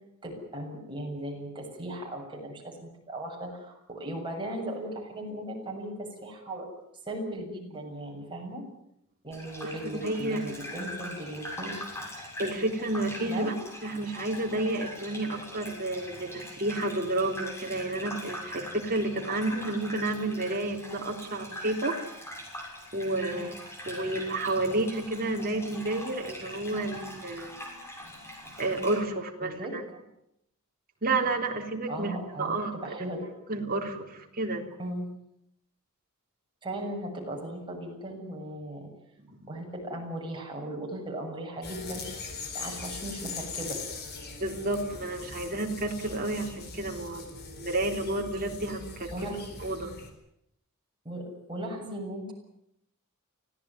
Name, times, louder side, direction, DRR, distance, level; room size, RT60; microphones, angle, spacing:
voice 1, 0.2-6.7 7.1-8.6 9.2-11.8 13.3-13.6 23.3-23.5 29.4-29.8 31.9-33.3 34.8-35.1 36.6-38.9 39.5-43.8 49.1-49.4 51.0-52.3, right 1 dB, 20° right, 0 dB, 7.4 m, -37 dB
Gurgling / Bathtub (filling or washing), 9.3-29.0, left 1 dB, 10° left, 6.7 m, -42 dB
voice 2, 10.0-10.4 12.4-13.5 13.8-22.0 22.9-23.5 23.9-27.6 28.6-29.8 31.0-33.0 33.5-34.6 39.2-39.5 44.4-49.3 49.6-49.9, right 2 dB, 40° right, 2 dB, 3.6 m, -31 dB
sound 1, 41.6-50.1, left 4 dB, 45° left, 4.6 m, -41 dB
25.0 x 17.0 x 9.8 m, 0.78 s
head